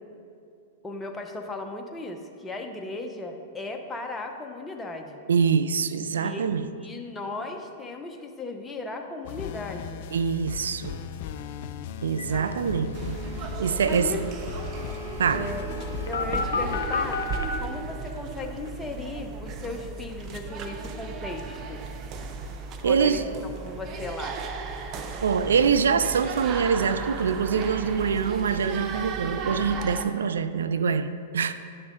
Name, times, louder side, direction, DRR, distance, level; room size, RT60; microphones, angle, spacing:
voice 1, 0.8-5.2 6.2-6.5 6.8-10.1 11.8-11.9 12.3-12.6 13.8-14.2 15.3-15.7 16.1-21.8 22.8-24.4, left 2 dB, 15° left, 3 dB, 0.9 m, -36 dB
voice 2, 5.3-6.7 10.1-11.0 12.0-14.1 15.2-15.5 22.8-23.2 25.2-31.5, right 6 dB, 75° right, 12 dB, 0.4 m, -24 dB
sound 1, 9.2-17.1, left 8 dB, 55° left, 0.4 m, -38 dB
sound 2, 12.2-12.3 12.5-12.6 12.9-17.4, left 4 dB, 75° left, 0.8 m, -33 dB
sound 3, 12.9-30.0, right 4 dB, 35° right, 0.7 m, -36 dB
10.0 x 6.2 x 3.8 m, 2.5 s
hypercardioid pair, 105°, 0 cm